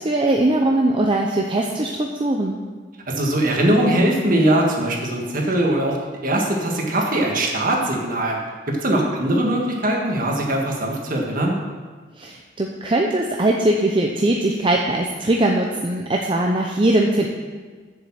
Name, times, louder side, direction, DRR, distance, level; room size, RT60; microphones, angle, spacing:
voice 1, 0.0-2.6 12.2-17.3, right 1 dB, 30° right, 0 dB, 0.6 m, -20 dB
voice 2, 3.1-6.0 6.2-8.4 8.7-11.6, right 1 dB, 50° right, 0 dB, 1.8 m, -21 dB
7.4 x 7.3 x 7.4 m, 1.4 s
head